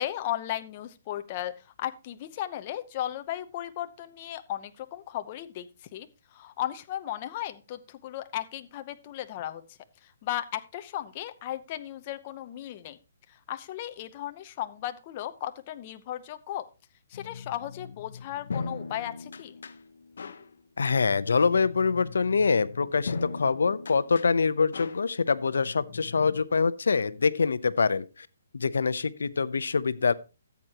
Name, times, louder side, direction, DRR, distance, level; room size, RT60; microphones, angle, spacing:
voice 1, 0.0-9.6 10.0-13.0 13.3-16.6 17.1-19.5, left 12 dB, 30° left, 0.8 m, -36 dB
sound 1, 17.1-26.4, left 4 dB, 70° left, 1.0 m, -40 dB
voice 2, 20.8-28.3 28.5-30.1, left 5 dB, 85° left, 0.7 m, -25 dB
13.5 x 8.2 x 2.9 m
hypercardioid pair, 165°, 0 cm